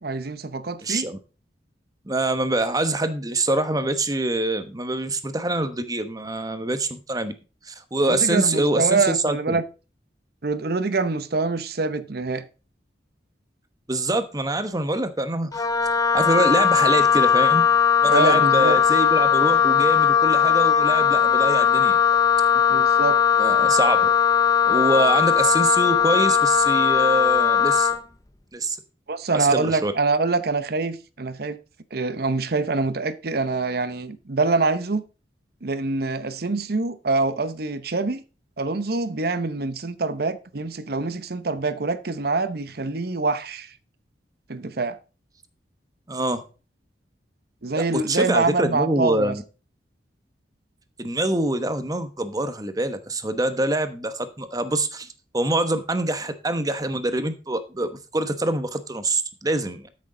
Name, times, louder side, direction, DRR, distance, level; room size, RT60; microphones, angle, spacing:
voice 1, 0.0-1.1 8.1-9.6 10.4-12.5 18.0-18.8 22.7-23.2 29.1-31.6 31.9-35.0 35.6-38.2 38.6-43.7 44.5-45.0 47.6-49.4, right 3 dB, 60° right, 0.9 m, -25 dB
voice 2, 0.8-1.2 2.0-7.3 7.6-9.6 13.9-15.7 16.1-17.6 18.0-22.0 23.4-24.1 24.7-27.9 28.5-28.8 29.3-29.9 46.1-46.4 47.9-49.4 51.0-55.1 55.3-59.9, right 2 dB, 20° right, 1.0 m, -25 dB
Wind instrument woodwind instrument, 15.5-28.0, left 8 dB, 20° left, 0.6 m, -19 dB
12.5 x 6.4 x 3.8 m
head